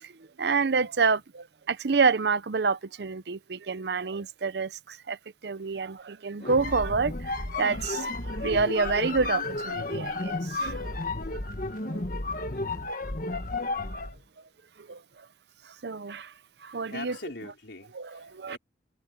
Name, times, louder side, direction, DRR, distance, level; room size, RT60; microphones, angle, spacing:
voice 1, 0.4-5.2 5.4-10.9 11.9-12.0 14.9-15.0 15.8-16.3 16.6-17.2 17.9-18.6, right 4 dB, 65° right, 0.6 m, -28 dB
sound 1, 6.4-14.2, left 2 dB, 45° left, 1.5 m, -32 dB
voice 2, 16.9-18.6, left 3 dB, 75° left, 3.7 m, -42 dB
head